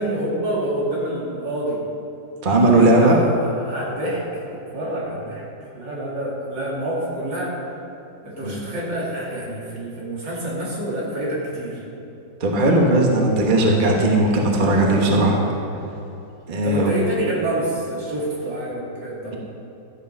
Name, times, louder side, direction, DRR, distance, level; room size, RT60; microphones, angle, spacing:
voice 1, 0.0-1.8 2.6-5.5 5.7-7.6 8.2-11.8 16.6-19.4, right 1 dB, 75° right, -5 dB, 3.3 m, -27 dB
voice 2, 2.4-3.2 8.4-8.6 12.4-15.4 16.5-16.9, right 2 dB, 30° right, 0 dB, 1.3 m, -17 dB
13.5 x 8.6 x 5.4 m, 2.9 s
omnidirectional pair, 2.0 m